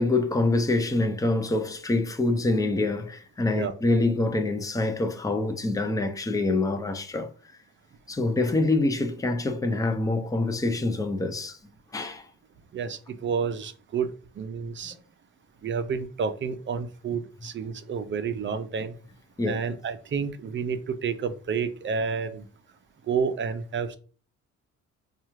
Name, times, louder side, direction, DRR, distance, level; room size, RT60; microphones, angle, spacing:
voice 1, 0.0-7.3 8.1-12.3 14.9-15.0 19.4-19.6, left 2 dB, 10° left, 0.6 m, -26 dB
voice 2, 12.7-14.9 15.6-18.9 19.4-22.5 23.1-24.0, right 6 dB, 40° right, 0.5 m, -30 dB
4.5 x 2.4 x 3.0 m
cardioid pair, 90°, 30 cm